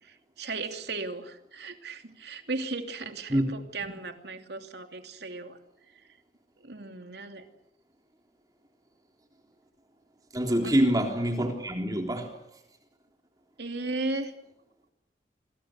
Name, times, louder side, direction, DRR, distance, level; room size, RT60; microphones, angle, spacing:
voice 1, 0.0-5.6 6.6-7.4 10.6-10.7 13.6-14.3, right 3 dB, 70° right, 2.9 m, -36 dB
voice 2, 10.3-12.3, equal, 20° right, 3.7 m, -26 dB
27.5 x 24.0 x 6.6 m
head